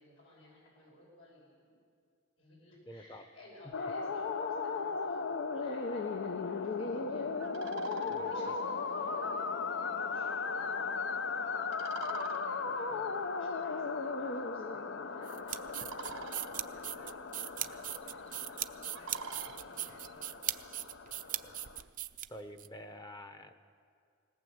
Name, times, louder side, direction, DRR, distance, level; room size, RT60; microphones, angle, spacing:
voice 1, 0.0-1.7 2.4-7.3 7.6-10.9 12.0-17.1 17.5-20.3, left 1 dB, 85° left, -4 dB, 6.2 m, -59 dB
voice 2, 2.9-3.2 8.1-8.5 21.4-21.6 22.3-23.5, equal, 20° left, 8 dB, 0.9 m, -48 dB
sound 1, 3.7-21.8, left 4 dB, 60° left, 0.7 m, -37 dB
sound 2, 7.4-21.9, right 5 dB, 80° right, 1.2 m, -52 dB
sound 3, 15.2-22.7, right 13 dB, 40° right, 0.5 m, -39 dB
19.5 x 18.5 x 8.0 m, 2.3 s
head